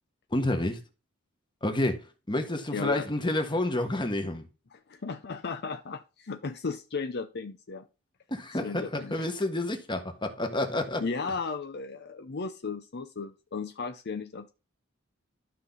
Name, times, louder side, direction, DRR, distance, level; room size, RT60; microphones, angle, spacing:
voice 1, 0.3-0.8 1.6-4.5 8.3-11.0, left 1 dB, 25° left, 1.6 m, -29 dB
voice 2, 2.7-3.1 4.7-7.9 8.6-9.3 11.0-14.5, left 4 dB, 55° left, 0.7 m, -35 dB
12.5 x 5.7 x 4.1 m
head